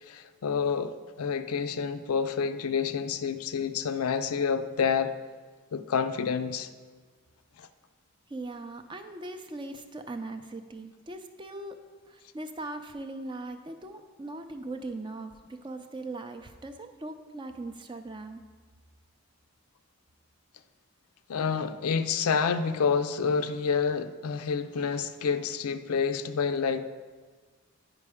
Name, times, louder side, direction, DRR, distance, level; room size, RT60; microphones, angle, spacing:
voice 1, 0.0-5.1 5.7-6.7 7.6-7.7 21.3-26.9, left 6 dB, 80° left, 0.4 m, -28 dB
voice 2, 8.3-11.7 12.1-18.4, right 2 dB, 20° right, 0.4 m, -40 dB
9.7 x 5.1 x 4.9 m
head